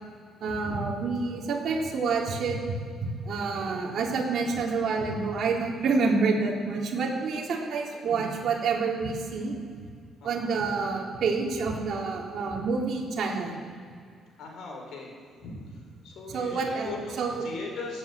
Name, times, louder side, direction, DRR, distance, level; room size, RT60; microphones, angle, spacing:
voice 1, 0.4-2.6 3.0-9.5 10.2-13.6 16.3-17.4, right 4 dB, 50° right, -2 dB, 3.4 m, -28 dB
voice 2, 7.8-8.2 10.2-10.5 14.4-15.1 15.4-15.6 16.0-18.0, left 3 dB, 70° left, 1 dB, 4.5 m, -39 dB
19.0 x 9.0 x 8.4 m, 2.2 s
cardioid pair, 150°, 0 cm